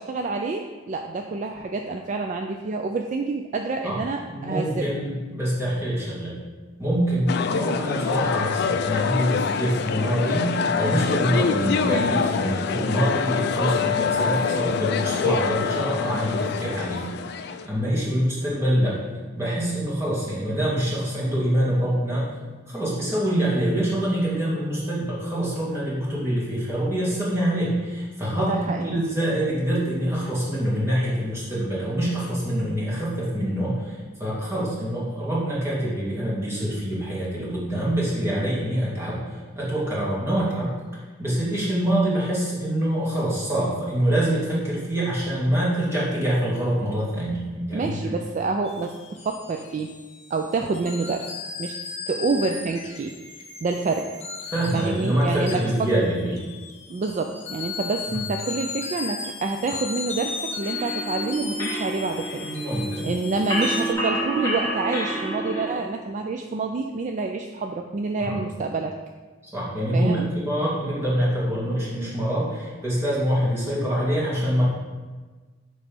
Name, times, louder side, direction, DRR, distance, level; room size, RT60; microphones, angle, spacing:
voice 1, 0.0-4.9 28.4-29.0 47.7-49.9 50.3-51.3 51.6-51.8 52.1-53.1 53.6-54.1 54.7-55.9 56.9-62.5 63.0-68.9 69.9-70.3, right 3 dB, 40° right, 4 dB, 0.3 m, -27 dB
voice 2, 4.3-6.4 6.8-19.0 19.3-22.3 22.7-40.7 41.2-48.2 54.5-56.4 58.1-58.2 62.4-63.1 68.2-68.4 69.4-74.6, right 1 dB, 15° right, -7 dB, 1.9 m, -25 dB
sound 1, 7.3-17.7, left 6 dB, 55° left, 0.3 m, -25 dB
sound 2, 48.6-63.9, left 5 dB, 35° left, 0.7 m, -36 dB
sound 3, 60.6-65.7, right 1 dB, 20° left, 1.2 m, -29 dB
7.0 x 3.1 x 5.2 m, 1.3 s
head